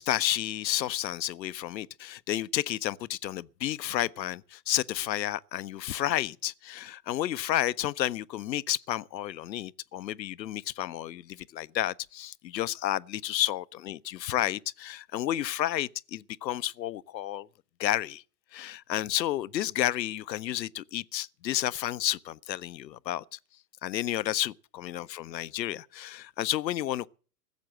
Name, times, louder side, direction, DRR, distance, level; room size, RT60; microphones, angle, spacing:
voice 1, 0.0-17.5 17.8-18.2 18.5-23.4 23.8-27.1, left 13 dB, 85° left, 0.7 m, -31 dB
16.0 x 7.4 x 7.6 m
hypercardioid pair, 100°, 49 cm